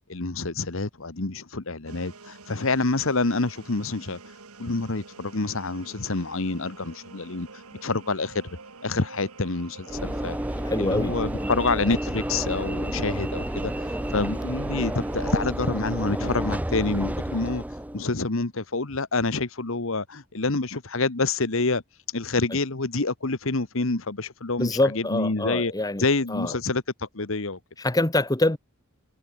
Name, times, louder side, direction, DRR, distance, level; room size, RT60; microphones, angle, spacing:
voice 1, 0.1-4.2 4.6-7.5 7.8-8.6 8.8-10.4 10.8-13.9 14.1-17.6 17.9-21.8 22.1-25.7 26.0-27.6, left 3 dB, 65° left, 1.4 m, -27 dB
sound 1, 1.9-15.4, right 4 dB, 85° right, 2.4 m, -47 dB
Train / Engine / Alarm, 9.9-18.1, right 1 dB, 5° right, 0.6 m, -30 dB
voice 2, 10.6-11.1 11.4-11.5 24.6-26.0 26.3-26.5 27.8-28.6, left 2 dB, 15° left, 1.1 m, -25 dB
head